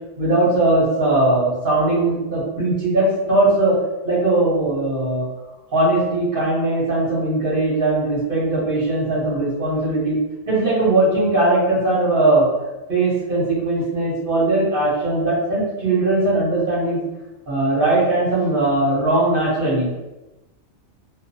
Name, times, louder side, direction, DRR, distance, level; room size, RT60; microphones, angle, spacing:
voice 1, 0.2-3.8 4.0-5.3 5.7-10.2 10.5-12.5 12.9-17.0 17.5-19.9, right 2 dB, 45° right, -8 dB, 1.0 m, -19 dB
2.4 x 2.4 x 2.6 m, 1.0 s
omnidirectional pair, 1.4 m